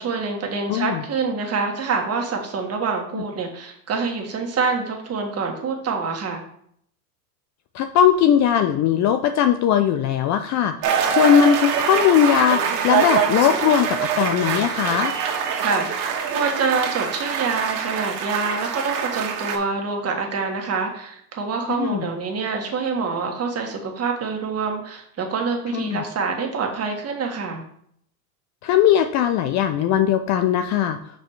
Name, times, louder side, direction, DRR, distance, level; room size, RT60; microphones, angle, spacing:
voice 1, 0.0-6.4 15.6-27.6, right 4 dB, 30° right, 2 dB, 1.6 m, -26 dB
voice 2, 0.7-1.0 7.7-10.7 11.1-15.1 21.7-22.0 25.7-26.0 28.6-31.0, left 9 dB, 40° left, 8 dB, 0.4 m, -19 dB
sound 1, 10.8-19.6, right 7 dB, 75° right, 1.5 m, -24 dB
5.6 x 5.0 x 4.6 m, 0.68 s
hypercardioid pair, 100°, 48 cm